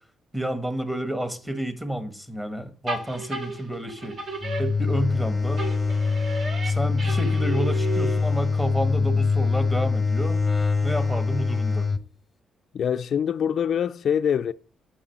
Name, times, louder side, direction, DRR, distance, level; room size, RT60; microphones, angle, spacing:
voice 1, 0.3-4.2 4.6-5.6 6.6-10.4 10.8-11.9, right 1 dB, 10° right, 1.5 m, -30 dB
sound 1, 2.9-5.2 5.6-8.4, right 2 dB, 50° right, 1.9 m, -33 dB
sound 2, 4.4-12.0, left 4 dB, 20° left, 0.8 m, -24 dB
voice 2, 12.7-14.5, left 8 dB, 60° left, 0.3 m, -24 dB
7.1 x 5.5 x 5.8 m
cardioid pair, 90°, 0 cm